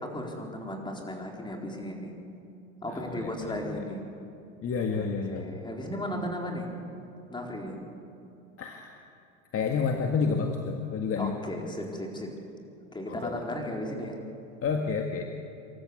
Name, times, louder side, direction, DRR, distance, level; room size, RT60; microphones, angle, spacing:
voice 1, 0.0-2.1 2.8-4.0 4.9-6.7 7.3-7.8 11.2-12.3 12.9-14.2, left 1 dB, 10° left, 1 dB, 4.3 m, -35 dB
voice 2, 2.9-3.8 4.6-5.6 8.6-9.0 9.5-11.4 13.1-13.3 14.6-15.2, left 5 dB, 35° left, 3 dB, 1.8 m, -30 dB
26.0 x 13.5 x 8.4 m, 2.8 s
supercardioid pair, 100°, 37 cm